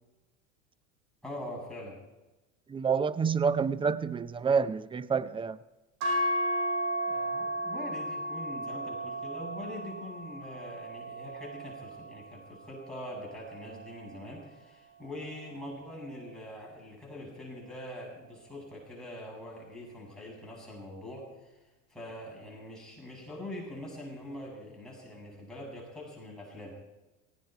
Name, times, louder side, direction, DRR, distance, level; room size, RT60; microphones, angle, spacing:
voice 1, 1.2-2.0 7.1-21.6 21.9-26.8, left 1 dB, ahead, 7.5 m, -43 dB
voice 2, 2.7-5.6, right 6 dB, 15° right, 0.5 m, -28 dB
sound 1, 6.0-14.2, right 1 dB, 75° right, 6.4 m, -35 dB
18.5 x 16.0 x 4.7 m
supercardioid pair, 110°, 38 cm